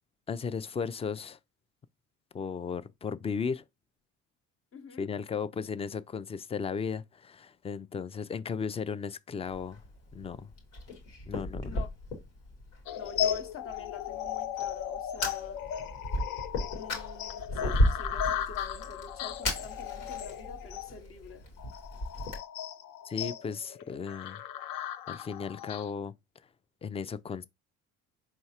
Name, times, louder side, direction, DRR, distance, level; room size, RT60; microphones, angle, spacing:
voice 1, 0.3-1.4 2.3-3.6 5.0-9.8 10.1-10.5 11.3-11.8 23.1-24.4 25.1-26.1 26.8-27.4, left 6 dB, 20° left, 0.3 m, -35 dB
voice 2, 4.7-5.1 11.6-11.9 13.0-15.6 16.7-21.5, left 5 dB, 40° left, 0.8 m, -47 dB
Fire, 9.4-22.4, left 1 dB, 90° left, 2.1 m, -35 dB
sound 1, 12.9-25.9, left 10 dB, 70° left, 0.6 m, -36 dB
4.5 x 3.2 x 2.8 m
supercardioid pair, 75°, 36 cm